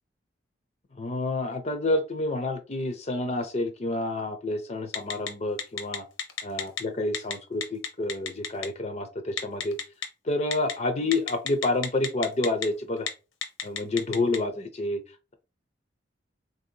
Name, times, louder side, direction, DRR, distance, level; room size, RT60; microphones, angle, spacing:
voice 1, 1.0-6.0 6.4-9.8 10.3-13.1 13.6-15.0, left 2 dB, 35° left, 7 dB, 0.5 m, -29 dB
Telephone, 4.9-5.3 5.6-6.8 7.1-7.3 7.6-8.7 9.4-10.1 10.5-10.7 11.1-12.7 13.0-13.1 13.4-14.4, left 8 dB, 85° left, 0.8 m, -30 dB
4.1 x 2.6 x 2.7 m, 0.30 s
head